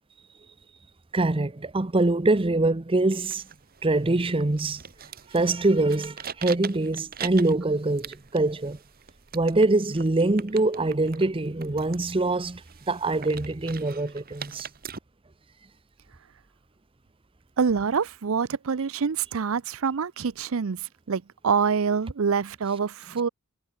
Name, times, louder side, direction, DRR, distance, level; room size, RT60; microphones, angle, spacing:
voice 1, 1.1-3.4 3.8-4.8 5.3-8.8 9.3-12.6 12.9-14.7, right 2 dB, 25° right, 0.7 m, -24 dB
sound 1, 3.2-15.0, right 7 dB, 45° right, 1.5 m, -42 dB
voice 2, 17.6-23.3, right 6 dB, 70° right, 0.5 m, -26 dB
head